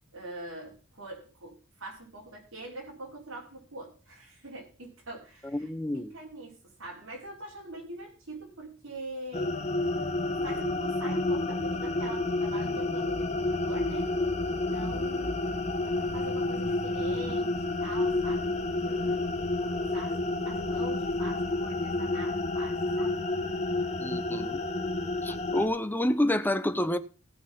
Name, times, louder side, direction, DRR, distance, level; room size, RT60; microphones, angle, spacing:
voice 1, 0.1-9.5 10.2-14.1 14.4-15.4 15.8-18.5 18.8-23.2, right 1 dB, 75° right, 4.6 m, -44 dB
voice 2, 5.5-6.1 24.0-24.6 25.2-27.0, left 1 dB, 10° left, 0.8 m, -28 dB
sound 1, 9.3-25.7, left 2 dB, 35° left, 1.3 m, -30 dB
16.0 x 5.9 x 5.8 m
head